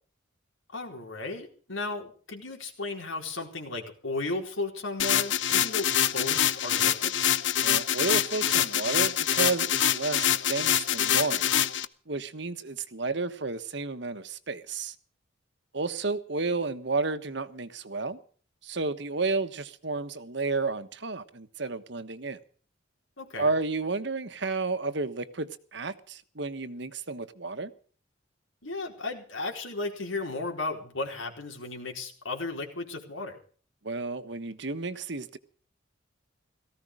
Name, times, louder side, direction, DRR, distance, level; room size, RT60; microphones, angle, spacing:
voice 1, 0.7-7.3 23.2-23.5 28.6-33.4, left 3 dB, 85° left, 4.4 m, -35 dB
sound 1, 5.0-11.8, left 10 dB, 65° left, 0.8 m, -25 dB
voice 2, 7.6-11.5 12.1-14.9 15.7-18.2 18.6-22.4 23.4-27.7 33.8-35.4, right 3 dB, 60° right, 1.3 m, -32 dB
18.0 x 15.5 x 5.0 m
head